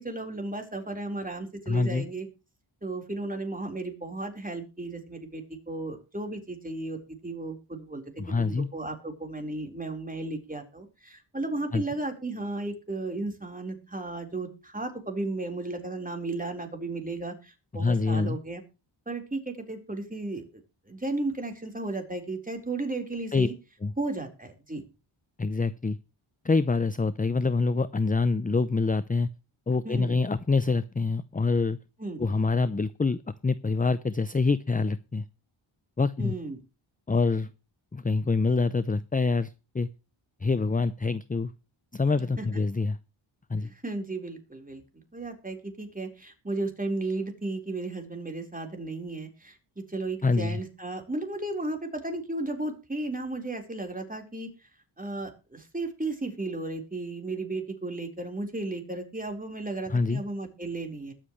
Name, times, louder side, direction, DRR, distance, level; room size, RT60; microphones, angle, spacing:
voice 1, 0.0-2.3 2.8-18.6 19.1-20.6 20.9-23.5 24.0-24.8 29.8-30.2 32.0-32.2 36.2-36.6 42.4-42.5 43.6-54.5 55.0-61.1, right 2 dB, 15° right, 3 dB, 4.4 m, -34 dB
voice 2, 1.7-2.0 8.2-8.7 11.7-11.8 17.7-18.4 23.3-23.5 23.8-23.9 25.4-26.0 26.4-29.3 29.7-31.8 32.2-35.2 36.0-36.3 37.1-37.5 37.9-39.9 40.4-41.5 41.9-43.0 43.5-43.7 50.2-50.6 59.9-60.2, left 3 dB, 15° left, 16 dB, 0.6 m, -26 dB
21.5 x 7.5 x 3.2 m, 0.31 s
cardioid pair, 65°, 50 cm